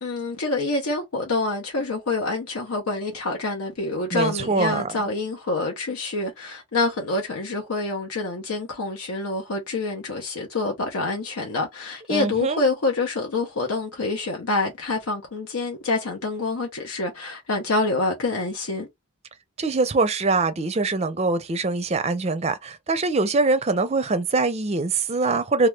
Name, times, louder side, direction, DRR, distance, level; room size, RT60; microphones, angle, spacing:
voice 1, 0.0-18.9, left 3 dB, 85° left, 0.7 m, -27 dB
voice 2, 4.1-4.9 12.1-12.6 19.6-25.7, right 3 dB, 30° right, 0.4 m, -23 dB
2.8 x 2.3 x 3.3 m
head